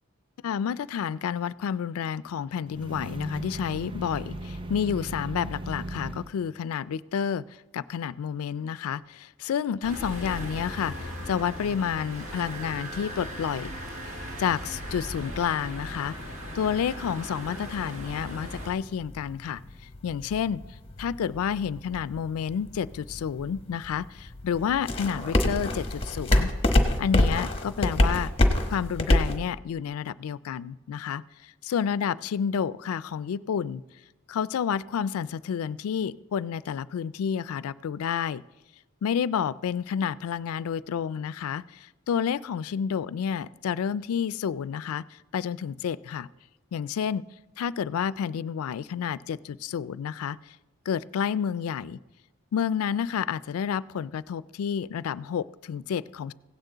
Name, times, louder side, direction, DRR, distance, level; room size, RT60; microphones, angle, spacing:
voice 1, 0.4-7.4 7.7-13.7 14.4-16.1 16.5-19.6 20.0-20.6 21.0-26.5 27.0-28.3 28.7-33.8 34.3-38.4 39.0-45.0 45.3-46.3 46.7-47.2 47.6-50.4 50.9-52.0 52.5-56.3, left 7 dB, 85° left, 19 dB, 0.3 m, -30 dB
sound 1, 2.6-6.3, right 1 dB, 25° right, 0.4 m, -37 dB
sound 2, 9.8-18.7, equal, 80° right, 1.6 m, -38 dB
sound 3, 9.9-29.4, left 1 dB, 25° left, 1.0 m, -30 dB
16.5 x 8.9 x 3.9 m, 1.1 s
head